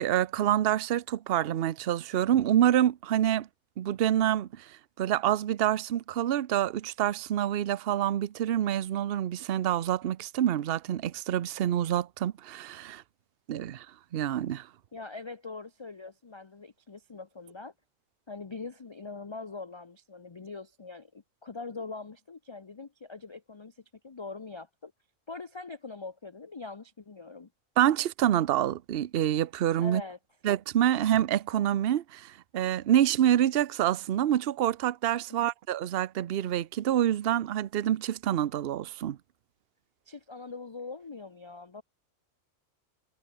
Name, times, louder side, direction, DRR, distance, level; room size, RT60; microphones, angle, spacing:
voice 1, 0.0-3.5 3.8-13.0 13.5-13.9 14.1-14.7 27.8-30.0 30.4-39.2, right 11 dB, 55° right, 0.8 m, -27 dB
voice 2, 14.9-17.7 18.3-24.9 25.3-27.5 29.8-30.2 35.3-35.5 40.1-41.8, left 3 dB, 30° left, 0.6 m, -42 dB
omnidirectional pair, 1.4 m